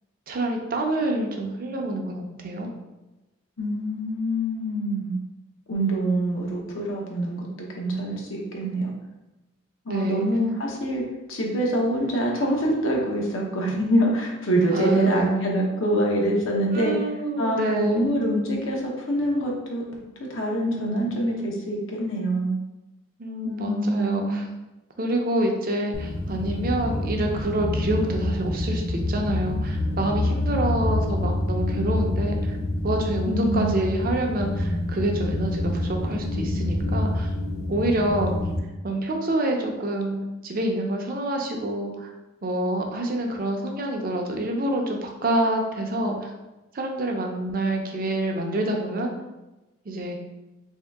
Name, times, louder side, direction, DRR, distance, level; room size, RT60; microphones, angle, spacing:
voice 1, 0.3-2.7 9.9-10.3 14.7-15.6 16.7-18.1 23.2-24.5 25.0-32.5 32.8-37.3 37.7-38.3 38.8-40.2 40.4-42.1 42.4-46.3 46.7-49.1 49.9-50.2, right 1 dB, 45° right, 2 dB, 0.5 m, -27 dB
voice 2, 3.6-5.2 5.7-8.9 9.8-11.0 11.3-17.1 17.4-19.8 20.2-22.5 23.4-24.4 33.3-33.8, right 1 dB, 75° left, -1 dB, 0.8 m, -25 dB
sound 1, 25.9-38.6, left 1 dB, 40° left, 0.5 m, -27 dB
3.1 x 2.8 x 3.4 m, 1.0 s
head